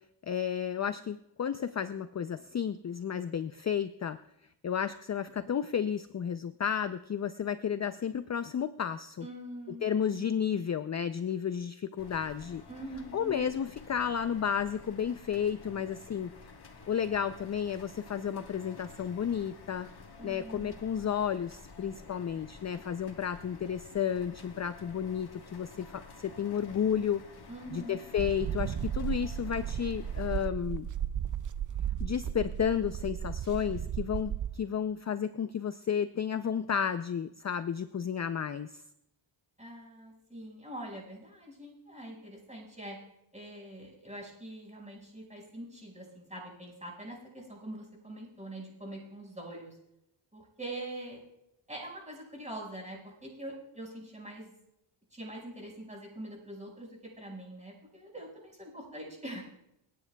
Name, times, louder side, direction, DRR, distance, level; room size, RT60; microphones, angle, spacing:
voice 1, 0.2-4.2 4.6-9.3 9.7-12.6 13.1-16.3 16.9-19.9 20.2-27.2 27.7-30.9 32.0-38.8, left 8 dB, 35° left, 11 dB, 0.5 m, -32 dB
voice 2, 9.2-9.9 12.7-13.5 20.2-20.7 27.5-28.0 39.6-43.0 43.3-49.8 50.3-51.2 51.7-54.5 55.1-59.4, right 1 dB, 15° right, -2 dB, 5.3 m, -44 dB
sound 1, 12.0-30.5, left 4 dB, 50° left, 1.5 m, -51 dB
sound 2, 28.2-34.6, right 9 dB, 40° right, 0.5 m, -35 dB
29.5 x 9.8 x 2.3 m, 0.81 s
cardioid pair, 80°, 49 cm